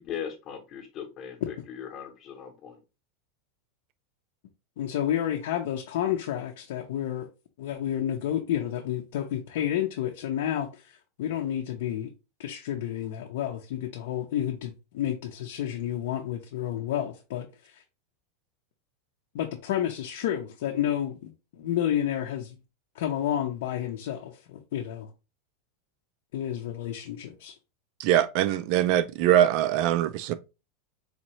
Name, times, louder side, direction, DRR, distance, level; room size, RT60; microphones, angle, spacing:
voice 1, 0.0-2.8, left 8 dB, 25° left, 0.9 m, -39 dB
voice 2, 4.8-7.3 7.6-10.9 11.2-12.1 12.4-17.8 19.3-22.6 22.9-25.1 26.3-27.5, left 11 dB, 60° left, 0.6 m, -30 dB
voice 3, 28.0-30.3, right 11 dB, 40° right, 0.3 m, -22 dB
4.2 x 2.8 x 3.0 m
supercardioid pair, 175°, 0 cm